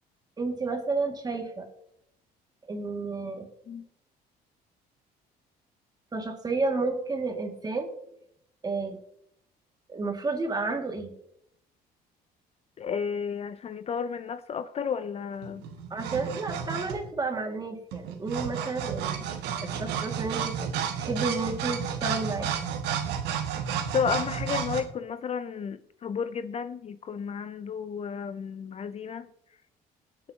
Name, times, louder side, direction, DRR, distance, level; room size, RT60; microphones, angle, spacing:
voice 1, 0.4-1.7 2.7-3.5 6.1-7.9 8.6-9.0 9.9-11.1 15.9-19.2 19.6-20.7 21.0-22.5, right 3 dB, 25° right, 2.1 m, -31 dB
voice 2, 12.8-15.6 23.9-29.3, left 6 dB, 40° left, 0.5 m, -32 dB
Metal File, 15.4-17.2 17.9-24.8, right 8 dB, 90° right, 1.4 m, -32 dB
20.0 x 7.7 x 2.9 m
cardioid pair, 110°, 17 cm